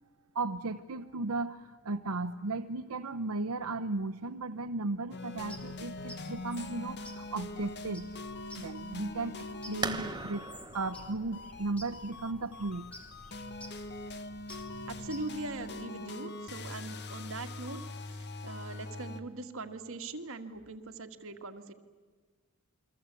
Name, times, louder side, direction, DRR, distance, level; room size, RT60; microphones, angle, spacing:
voice 1, 0.3-8.1 8.6-10.5 10.7-12.9, right 3 dB, 80° right, 6 dB, 0.9 m, -35 dB
sound 1, 5.1-19.2, left 2 dB, 50° left, 1.6 m, -43 dB
sound 2, 5.4-15.9, equal, 5° left, 3.4 m, -52 dB
sound 3, 9.8-15.3, right 3 dB, 20° right, 1.4 m, -42 dB
voice 2, 14.9-17.8 18.4-21.7, right 2 dB, 65° right, 6 dB, 2.0 m, -41 dB
29.0 x 23.0 x 8.4 m, 1.4 s
head